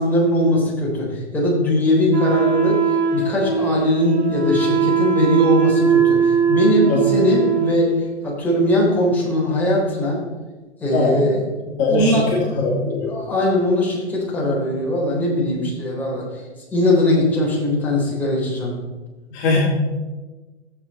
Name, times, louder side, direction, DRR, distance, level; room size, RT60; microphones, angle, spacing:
voice 1, 0.0-10.2 10.8-11.4 11.9-12.7 13.1-16.4 16.7-18.8, left 1 dB, 5° left, -6 dB, 3.6 m, -20 dB
Wind instrument woodwind instrument, 2.1-8.0, right 6 dB, 40° right, 2.0 m, -20 dB
voice 2, 10.9-11.2 11.8-12.2 12.5-13.2 19.3-19.6, left 3 dB, 30° left, -4 dB, 2.7 m, -20 dB
15.0 x 7.8 x 4.2 m, 1.2 s
hypercardioid pair, 125°, 35 cm